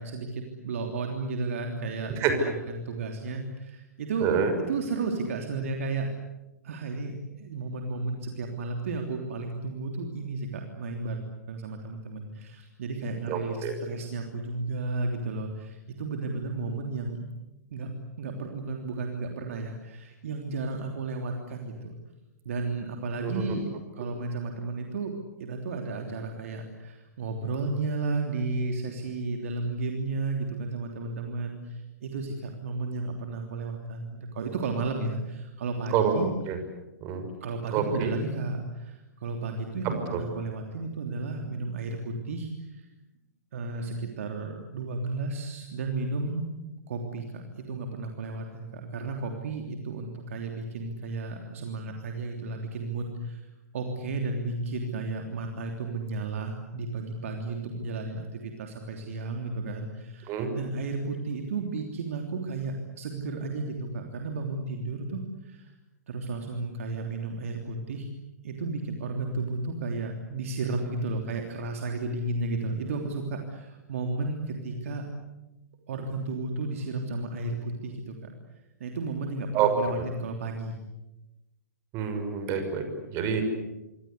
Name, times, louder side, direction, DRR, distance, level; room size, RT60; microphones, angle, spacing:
voice 1, 0.0-4.3 4.7-6.1 6.6-11.2 11.5-17.2 17.7-17.9 18.2-21.9 22.4-25.1 25.4-36.3 37.4-42.9 43.5-46.5 46.9-53.5 53.7-65.7 66.1-68.1 68.4-75.1 75.9-78.3 78.8-80.8, right 3 dB, 55° right, 3 dB, 3.2 m, -33 dB
voice 2, 13.3-13.7 23.2-23.4 35.9-36.1 36.5-36.6 37.0-37.3 37.7-38.1 39.8-40.2 60.3-60.5 79.5-79.7 80.0-80.1 81.9-83.4, right 8 dB, 30° right, 7 dB, 6.1 m, -27 dB
26.5 x 25.0 x 8.2 m, 0.99 s
figure-of-eight pair, 110°, 9 cm